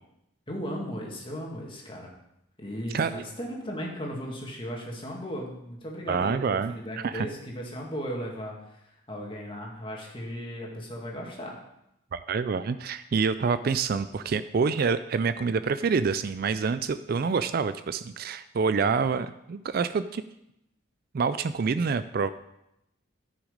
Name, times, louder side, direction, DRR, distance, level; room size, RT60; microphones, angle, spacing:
voice 1, 0.5-2.1 2.6-11.6, equal, 25° left, -1 dB, 2.1 m, -36 dB
voice 2, 2.9-3.2 6.1-7.3 12.1-20.2 21.1-22.3, right 5 dB, 45° right, 13 dB, 0.3 m, -27 dB
14.0 x 6.1 x 5.1 m, 0.83 s
head